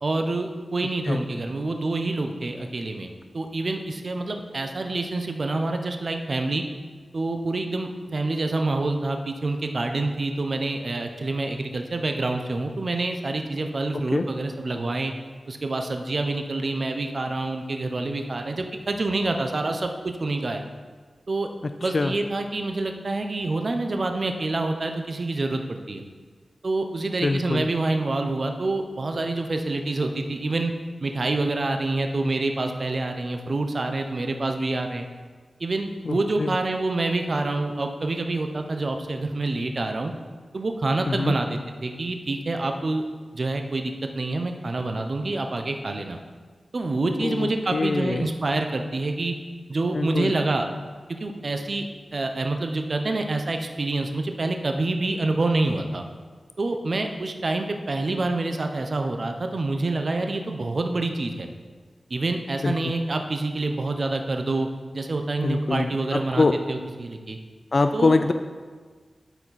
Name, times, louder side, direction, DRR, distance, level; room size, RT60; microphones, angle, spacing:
voice 1, 0.0-6.6 7.1-15.1 15.5-20.6 21.3-21.5 21.8-26.0 26.6-30.7 31.0-35.1 35.6-40.1 40.5-43.0 43.3-46.2 46.7-49.3 49.7-50.7 51.2-51.8 52.1-56.0 56.6-61.5 62.1-64.7 64.9-67.4 67.9-68.1, right 2 dB, 55° right, 5 dB, 0.7 m, -27 dB
voice 2, 13.9-14.3 21.6-22.1 27.2-27.7 36.1-36.6 41.1-41.4 47.2-48.3 49.9-50.3 62.6-62.9 65.4-66.6 67.7-68.3, left 3 dB, 55° left, 8 dB, 0.3 m, -24 dB
10.0 x 4.4 x 4.1 m, 1.5 s
wide cardioid pair, 70°, 0 cm